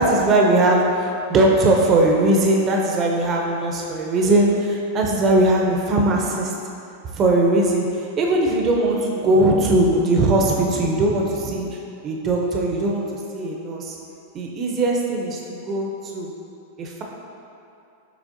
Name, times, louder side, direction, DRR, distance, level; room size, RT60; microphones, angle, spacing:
voice 1, 0.0-6.5 7.1-11.8 12.0-14.0 14.3-16.3 16.8-17.0, right 2 dB, 30° right, 0 dB, 0.5 m, -20 dB
6.2 x 3.2 x 2.6 m, 2.7 s
hypercardioid pair, 125°, 0 cm